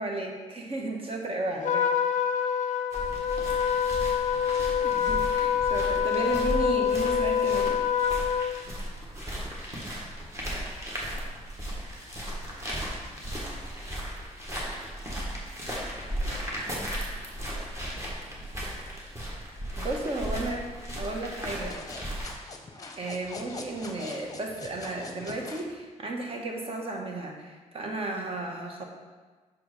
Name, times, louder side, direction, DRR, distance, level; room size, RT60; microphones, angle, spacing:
voice 1, 0.0-1.9 4.8-7.8 19.8-21.8 23.0-28.8, right 2 dB, 45° right, 1 dB, 1.2 m, -34 dB
Trumpet, 1.6-8.5, left 8 dB, 75° left, 0.4 m, -26 dB
sound 1, 2.9-22.3, right 1 dB, 20° right, 1.6 m, -36 dB
sound 2, 21.5-25.7, left 3 dB, 30° left, 0.8 m, -43 dB
6.1 x 4.7 x 4.8 m, 1.4 s
cardioid pair, 110°, 13 cm